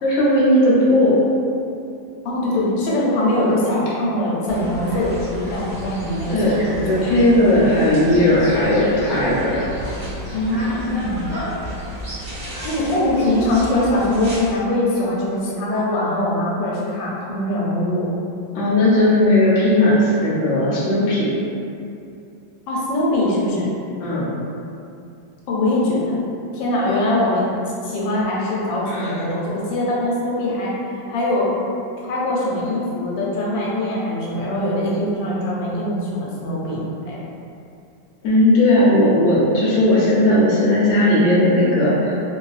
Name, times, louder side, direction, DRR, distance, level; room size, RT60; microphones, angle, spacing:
voice 1, 0.0-1.2 6.3-6.6 6.9-9.6 18.5-21.3 24.0-24.3 28.8-29.2 38.2-42.1, left 1 dB, 55° left, -8 dB, 0.9 m, -16 dB
voice 2, 2.2-7.0 10.3-11.3 12.6-18.1 22.7-23.7 25.5-26.2 26.5-27.5 27.8-30.7 31.1-31.6 32.0-36.8 37.1-37.2, left 1 dB, 85° left, -5 dB, 1.3 m, -22 dB
sound 1, 4.5-14.5, equal, 45° right, 0.6 m, -32 dB
2.8 x 2.6 x 2.3 m, 2.5 s
omnidirectional pair, 1.9 m